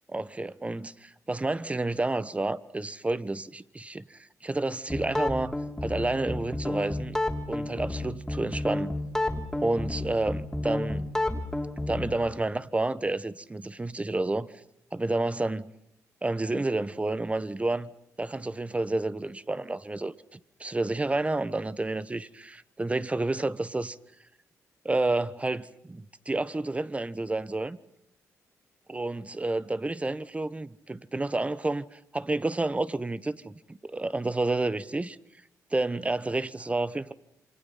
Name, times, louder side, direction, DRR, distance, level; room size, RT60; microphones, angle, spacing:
voice 1, 0.1-5.6 5.8-7.2 7.5-9.0 9.6-11.0 11.9-14.5 14.9-15.7 16.2-17.9 18.2-24.0 24.8-27.8 28.9-35.2 35.7-37.1, right 2 dB, 20° right, 1.1 m, -30 dB
sound 1, 4.9-12.2, left 2 dB, 10° left, 3.3 m, -31 dB
28.0 x 24.5 x 5.8 m
cardioid pair, 70°, 6 cm